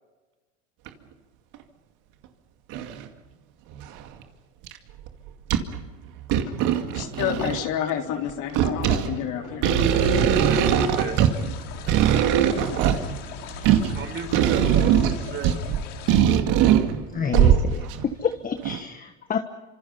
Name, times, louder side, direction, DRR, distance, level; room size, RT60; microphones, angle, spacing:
sound 1, 0.9-1.0 1.5-1.6 2.7-3.1 3.7-4.2 4.7-4.8 5.1-5.8 6.2-7.7 8.3-18.1 18.6-18.8, right 9 dB, 55° right, 2.3 m, -21 dB
voice 1, 6.9-10.2 12.7-13.1, left 10 dB, 55° left, 2 dB, 3.8 m, -30 dB
sound 2, 9.8-16.2, left 9 dB, 80° left, 3.8 m, -40 dB
voice 2, 10.4-11.2 13.9-15.5, right 6 dB, 30° right, 4 dB, 5.8 m, -34 dB
voice 3, 17.1-17.9 18.2-19.4, left 7 dB, 25° left, 7 dB, 1.3 m, -28 dB
28.0 x 26.0 x 5.6 m, 1.2 s
supercardioid pair, 105°, 36 cm